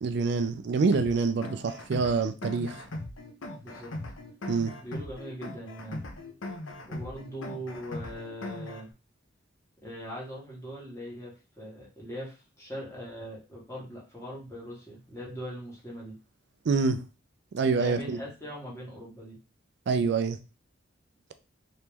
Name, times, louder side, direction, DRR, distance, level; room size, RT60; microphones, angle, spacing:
voice 1, 0.0-2.8 4.5-4.8 16.7-17.0 17.5-18.2 19.9-20.4, right 4 dB, 60° right, 0.4 m, -26 dB
sound 1, 0.9-8.9, left 2 dB, 85° left, 0.7 m, -39 dB
voice 2, 3.6-3.9 4.8-6.0 6.9-8.9 9.8-16.1 17.7-19.4, equal, 15° left, 1.5 m, -41 dB
3.1 x 3.0 x 3.4 m
head